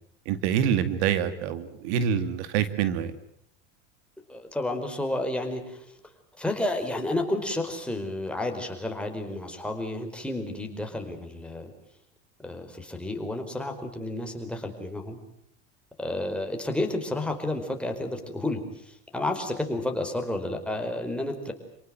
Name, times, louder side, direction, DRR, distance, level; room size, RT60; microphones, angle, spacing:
voice 1, 0.3-3.1, right 8 dB, 80° right, 11 dB, 2.3 m, -26 dB
voice 2, 4.3-5.9 6.4-11.7 12.4-15.2 16.0-21.5, left 1 dB, 5° left, 3 dB, 4.9 m, -31 dB
29.0 x 19.0 x 9.1 m, 0.70 s
supercardioid pair, 120°, 33 cm